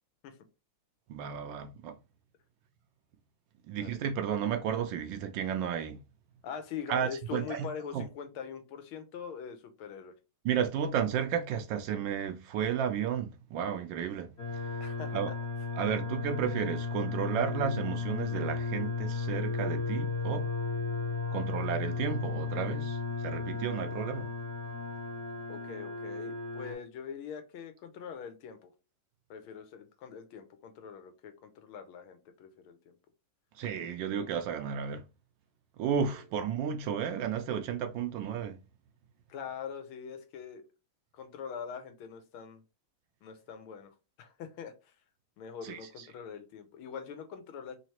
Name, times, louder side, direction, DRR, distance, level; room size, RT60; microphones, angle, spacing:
voice 1, 1.1-2.0 3.7-6.0 6.9-7.7 7.9-8.0 10.4-14.3 15.1-15.3 15.8-20.5 21.3-24.3 33.6-35.0 35.8-38.6 45.6-46.1, right 8 dB, 75° right, 1.2 m, -33 dB
voice 2, 6.4-10.1 14.8-15.4 25.5-28.7 29.3-33.0 36.0-36.3 39.3-40.6 41.1-42.6 43.2-43.9 44.2-44.9 45.4-47.8, left 7 dB, 85° left, 1.7 m, -43 dB
sound 1, 14.4-26.7, left 4 dB, 40° left, 1.0 m, -34 dB
4.0 x 3.2 x 2.8 m
omnidirectional pair, 2.3 m